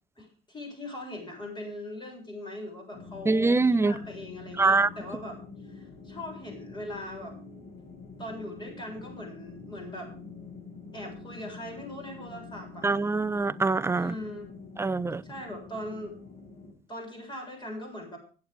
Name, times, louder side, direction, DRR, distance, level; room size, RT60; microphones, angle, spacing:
voice 1, 0.2-5.4 5.6-7.4 8.2-10.1 10.9-12.9 13.9-14.5 15.2-16.2 16.9-18.2, left 1 dB, 25° left, 7.7 m, -40 dB
sound 1, 2.9-16.7, left 4 dB, 40° left, 6.2 m, -46 dB
voice 2, 3.3-3.9 4.6-4.9 12.8-14.1 14.8-15.2, right 3 dB, 15° right, 0.6 m, -24 dB
24.0 x 8.8 x 3.7 m
cardioid pair, 110°, 17 cm